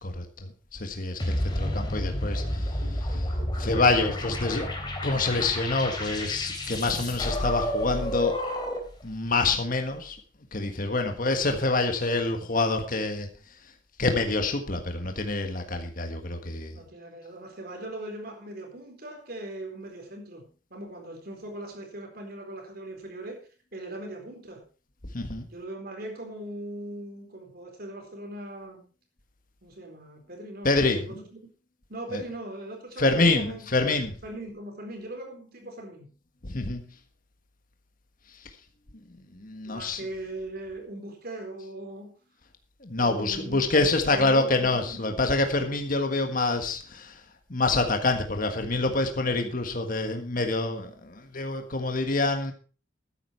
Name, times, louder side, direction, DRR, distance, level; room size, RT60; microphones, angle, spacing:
voice 1, 0.0-4.7 5.0-8.4 9.0-10.2 10.5-13.3 14.0-16.8 25.1-25.5 30.6-31.3 32.1-32.2 33.0-34.2 36.4-36.8 38.4-38.5 39.3-40.0 42.8-47.2 47.5-52.5, left 3 dB, 45° left, 5 dB, 1.6 m, -26 dB
sound 1, 1.2-9.0, left 1 dB, 25° left, 3.3 m, -30 dB
voice 2, 16.7-20.4 20.7-24.6 25.5-28.8 29.6-31.2 31.9-33.7 34.2-36.1 39.6-42.2 43.0-43.6 44.1-45.2, right 1 dB, 50° right, 3 dB, 4.2 m, -40 dB
13.0 x 10.0 x 4.6 m, 0.38 s
head